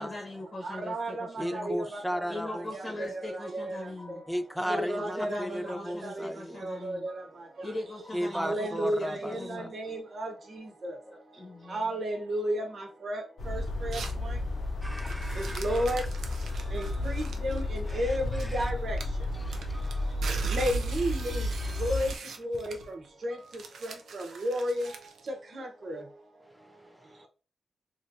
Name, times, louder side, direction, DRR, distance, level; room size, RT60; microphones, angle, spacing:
voice 1, 0.0-1.8 2.3-4.2 4.7-7.1 7.6-9.7 11.1-11.9, left 2 dB, 40° left, 0.9 m, -40 dB
voice 2, 0.6-2.2 3.1-3.8 4.7-5.7 6.0-6.3 6.6-7.1 8.3-10.3 10.8-10.9 11.7-14.3 15.6-16.0 16.7-19.0 20.5-21.4 21.8-22.1 22.4-22.7 23.2-23.4 23.8-24.9 25.5-26.0, equal, 60° right, 1.0 m, -32 dB
voice 3, 1.4-3.0 4.3-6.6 8.1-9.7 14.8-16.1 16.5-16.7 17.9-18.2 18.4-18.6 19.4-20.1 21.2-21.8, equal, ahead, 0.4 m, -36 dB
sound 1, 13.4-22.1, left 1 dB, 75° left, 0.7 m, -32 dB
sound 2, 13.9-14.3 14.8-18.6 19.0-25.3, right 5 dB, 85° right, 0.5 m, -43 dB
3.2 x 2.7 x 2.6 m
cardioid pair, 85°, 0 cm